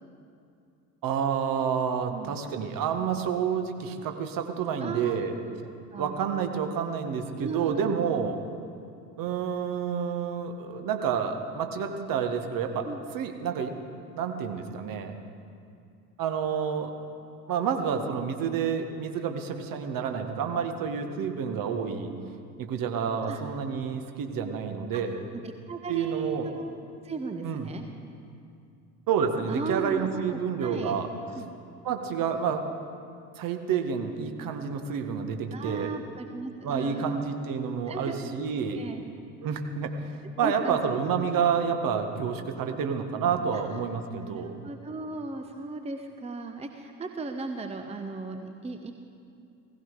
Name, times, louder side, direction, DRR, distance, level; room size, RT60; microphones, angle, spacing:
voice 1, 1.0-5.3 6.0-8.4 9.2-12.9 13.1-13.7 14.2-15.2 16.2-16.9 17.5-22.1 22.6-25.2 25.9-26.5 27.4-27.7 29.1-31.1 31.8-32.7 33.4-36.0 36.6-38.8 39.4-39.9 40.4-44.5, right 7 dB, 45° right, 5 dB, 1.7 m, -29 dB
voice 2, 4.8-5.3 5.9-6.2 7.4-7.9 12.8-13.0 23.2-23.4 24.9-25.0 25.3-26.8 27.0-27.8 29.5-31.0 31.3-31.5 35.5-37.2 37.9-38.2 38.7-39.0 40.4-40.8 43.5-43.6 44.2-48.9, right 3 dB, 15° right, 5 dB, 1.1 m, -36 dB
17.5 x 15.5 x 4.9 m, 2.5 s
figure-of-eight pair, 65°, 48 cm